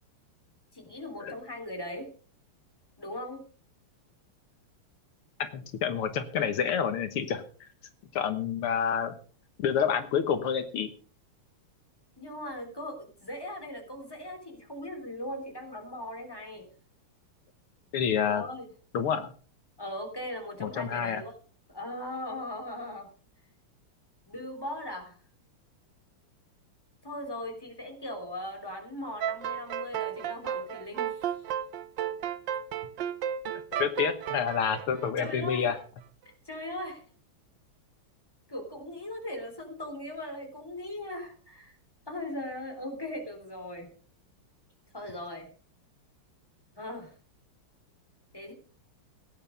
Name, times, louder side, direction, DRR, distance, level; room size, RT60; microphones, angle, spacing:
voice 1, 0.7-2.1 3.0-3.5 12.2-16.7 18.2-18.7 19.8-21.3 21.7-23.1 24.3-25.2 27.0-31.3 35.2-35.7 36.4-37.0 38.5-41.8 42.1-43.9 44.9-45.5 46.8-47.1 48.3-48.5, left 1 dB, 10° left, 4 dB, 3.7 m, -39 dB
voice 2, 5.4-7.4 8.1-9.1 9.6-10.9 17.9-18.4 18.9-19.3 20.6-21.2 33.8-35.8, left 7 dB, 80° left, 9 dB, 2.1 m, -28 dB
sound 1, 29.2-35.8, right 10 dB, 65° right, 1.5 m, -33 dB
17.5 x 9.2 x 5.3 m, 0.40 s
omnidirectional pair, 2.4 m